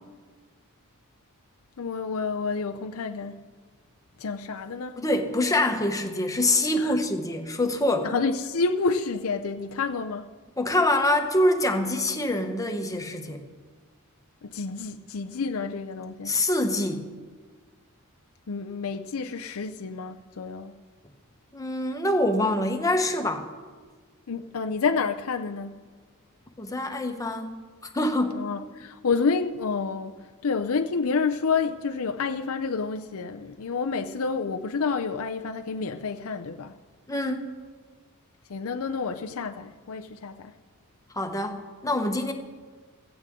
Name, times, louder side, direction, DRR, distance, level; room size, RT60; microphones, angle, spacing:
voice 1, 1.8-3.5 4.2-5.0 6.8-7.0 8.0-10.3 14.4-16.4 18.5-20.8 24.3-25.8 28.3-36.7 38.5-40.5, left 4 dB, 70° left, 0.6 m, -29 dB
voice 2, 5.0-8.1 10.6-13.4 16.2-17.1 21.5-23.5 26.6-27.5 27.8-28.4 37.1-37.5 41.1-42.3, left 1 dB, 15° left, 1.2 m, -25 dB
16.5 x 15.5 x 3.7 m
head